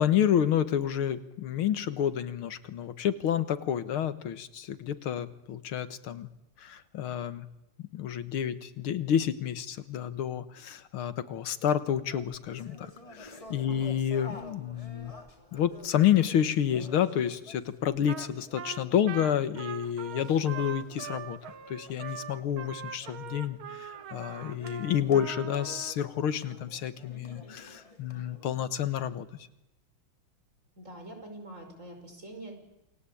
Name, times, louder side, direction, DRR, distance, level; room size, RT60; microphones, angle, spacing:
voice 1, 0.0-6.3 6.6-7.5 7.8-15.1 15.5-21.4 21.7-29.3, left 9 dB, 90° left, 13 dB, 2.2 m, -29 dB
sound 1, 12.1-28.4, left 2 dB, 15° left, 3.1 m, -51 dB
Trumpet, 18.1-18.3 18.6-25.9, right 8 dB, 80° right, 2.2 m, -42 dB
voice 2, 30.8-32.6, right 1 dB, 35° right, 4 dB, 6.0 m, -44 dB
28.5 x 21.5 x 8.6 m, 0.90 s
omnidirectional pair, 2.3 m